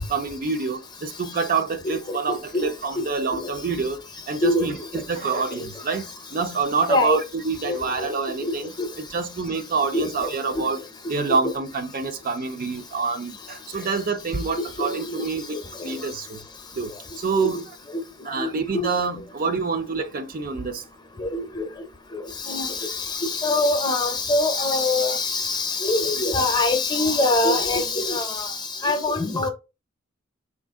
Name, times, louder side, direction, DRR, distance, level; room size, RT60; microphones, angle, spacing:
voice 1, 0.1-4.0 4.3-10.8 11.1-16.4 16.8-17.6 18.2-20.8, right 4 dB, 45° right, 0.4 m, -27 dB
voice 2, 1.8-2.6 3.3-3.4 4.4-4.7 6.9-7.2 7.7-8.1 8.4-8.9 9.9-10.3 10.6-10.7 14.8-15.2 15.8-16.0 17.4-17.6 18.4-18.5 18.7-18.9 21.2-21.7 22.4-28.6 28.8-29.5, left 2 dB, 20° left, 0.6 m, -24 dB
4.1 x 2.5 x 3.5 m
head